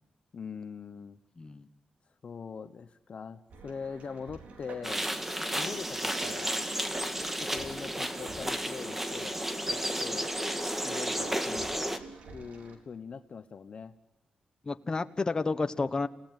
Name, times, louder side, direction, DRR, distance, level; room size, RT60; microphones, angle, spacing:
voice 1, 0.3-1.2 2.2-5.1 5.5-6.6 7.3-9.4 9.7-10.3 10.8-11.9 12.3-13.9 15.7-15.9, left 5 dB, 55° left, 11 dB, 1.0 m, -42 dB
voice 2, 1.4-1.7 14.6-16.1, left 3 dB, 30° left, 10 dB, 1.3 m, -30 dB
sound 1, 3.5-12.8, right 4 dB, 80° right, 4.0 m, -49 dB
sound 2, 4.8-12.0, equal, 10° right, 2.0 m, -32 dB
29.0 x 17.5 x 9.1 m, 0.85 s
cardioid pair, 95°, 2 cm